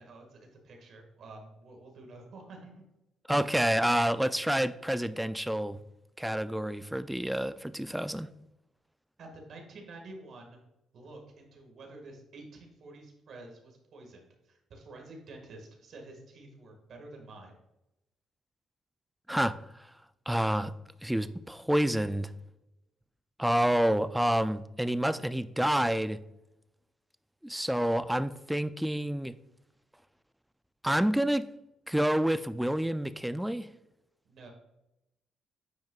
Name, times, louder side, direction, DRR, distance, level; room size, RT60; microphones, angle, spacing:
voice 1, 0.0-2.9 9.2-10.6 10.9-17.5 34.3-34.5, right 2 dB, 65° right, 1.8 m, -49 dB
voice 2, 3.3-5.8 6.2-8.3 19.3-19.9 20.3-20.7 21.0-22.3 23.4-26.2 27.4-29.3 30.8-31.5 31.9-33.7, right 1 dB, 5° right, 0.4 m, -28 dB
9.2 x 5.0 x 2.4 m
cardioid pair, 90°, 0 cm